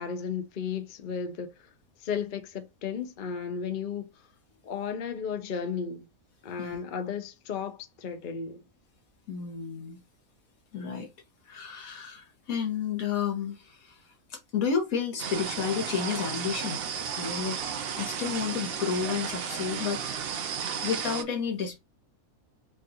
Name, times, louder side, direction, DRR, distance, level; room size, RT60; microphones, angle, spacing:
voice 1, 0.0-1.7 2.0-4.2 4.6-6.1 6.4-8.6, left 6 dB, 50° left, 0.6 m, -34 dB
voice 2, 9.3-10.0 10.7-11.1 11.5-14.0 14.3-16.8 17.2-20.0 20.8-21.8, left 6 dB, 70° left, 1.5 m, -31 dB
sound 1, 15.2-21.2, right 7 dB, 65° right, 0.6 m, -33 dB
5.1 x 2.4 x 2.7 m
omnidirectional pair, 1.6 m